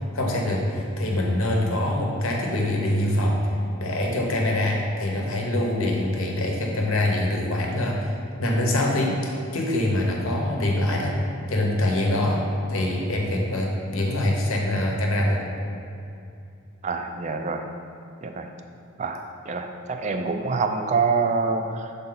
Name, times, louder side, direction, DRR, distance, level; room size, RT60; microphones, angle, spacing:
voice 1, 0.1-3.4 3.8-8.0 8.4-11.1 11.5-12.4 12.7-15.4, left 1 dB, 70° left, 0 dB, 0.9 m, -24 dB
voice 2, 16.8-17.6 18.2-18.5 19.0-21.9, right 4 dB, 35° right, 6 dB, 0.4 m, -26 dB
6.7 x 4.0 x 3.9 m, 2.6 s
head